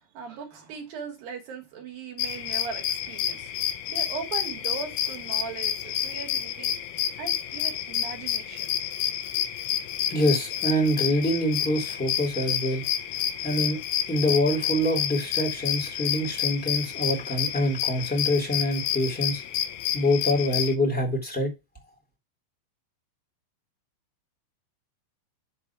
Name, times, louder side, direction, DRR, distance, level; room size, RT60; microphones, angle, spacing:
voice 1, 0.0-3.5 3.9-6.7 7.2-8.7, right 6 dB, 65° right, 2.5 m, -38 dB
sound 1, 2.2-20.7, left 10 dB, 85° left, 2.3 m, -29 dB
voice 2, 10.1-12.9 13.4-13.8 14.1-19.4 19.9-21.5, left 1 dB, 5° left, 1.4 m, -25 dB
7.1 x 4.7 x 5.9 m
omnidirectional pair, 5.6 m